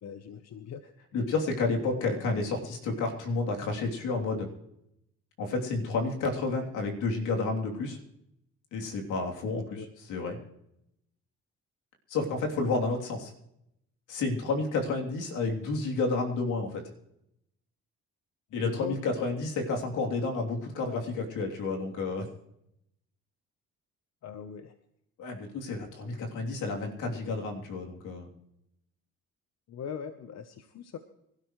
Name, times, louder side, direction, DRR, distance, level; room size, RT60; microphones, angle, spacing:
voice 1, 0.0-0.8 9.7-9.9 18.6-19.0 24.2-24.7 29.7-31.0, left 7 dB, 60° left, 9 dB, 1.0 m, -40 dB
voice 2, 1.1-4.5 5.4-8.0 8.7-10.4 12.1-13.3 14.1-16.8 18.5-22.2 25.2-28.3, left 3 dB, 90° left, 1 dB, 3.3 m, -30 dB
25.5 x 12.5 x 3.2 m, 0.80 s
cardioid pair, 90°, 30 cm